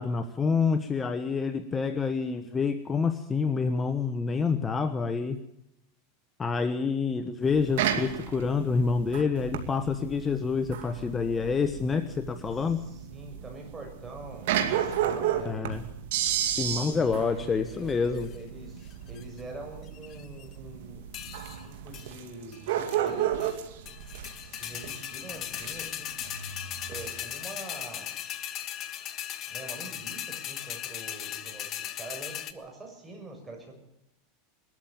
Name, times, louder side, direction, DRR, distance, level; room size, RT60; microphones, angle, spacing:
voice 1, 0.0-5.4 6.4-12.8 15.4-15.8 16.4-18.3, left 5 dB, 20° left, 9 dB, 1.1 m, -27 dB
sound 1, 7.4-27.2, right 10 dB, 75° right, 2.4 m, -33 dB
voice 2, 12.7-15.6 16.9-21.1 21.5-23.7 24.5-26.1 26.9-28.1 29.5-33.7, right 2 dB, 15° right, 1 dB, 6.9 m, -44 dB
sound 2, 17.9-18.4 18.9-19.4 19.9-20.5 21.1-21.6 21.9-22.1 22.5-22.6 22.9-23.6 23.9-32.5, left 11 dB, 35° left, 1.4 m, -38 dB
21.5 x 13.5 x 8.8 m, 0.82 s
supercardioid pair, 135°, 0 cm